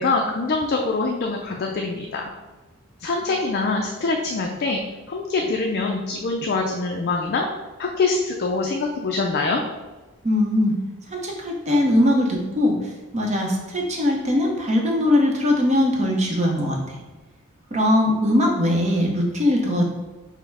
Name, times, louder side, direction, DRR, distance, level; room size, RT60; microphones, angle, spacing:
voice 1, 0.0-2.2 3.0-4.8 5.1-7.5 7.8-9.6, left 3 dB, 45° left, 1 dB, 0.4 m, -24 dB
voice 2, 10.2-10.7 11.1-17.0 17.7-19.9, left 1 dB, 30° right, 0 dB, 0.8 m, -21 dB
5.4 x 2.1 x 4.7 m, 1.2 s
head